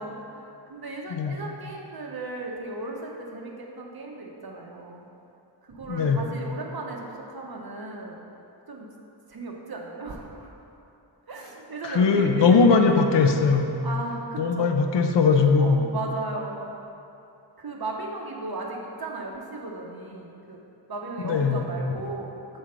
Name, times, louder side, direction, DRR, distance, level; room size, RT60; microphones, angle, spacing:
voice 1, 0.0-5.1 5.7-8.2 8.7-8.9 9.3-10.5 11.3-13.0 13.8-14.7 15.6-16.7 17.6-20.6 20.9-22.6, right 2 dB, 55° right, 0 dB, 1.0 m, -36 dB
voice 2, 5.9-6.2 11.8-13.7 14.4-15.8 21.2-21.7, left 5 dB, 75° left, 4 dB, 0.6 m, -20 dB
6.2 x 4.3 x 5.1 m, 2.8 s
wide cardioid pair, 75°, 44 cm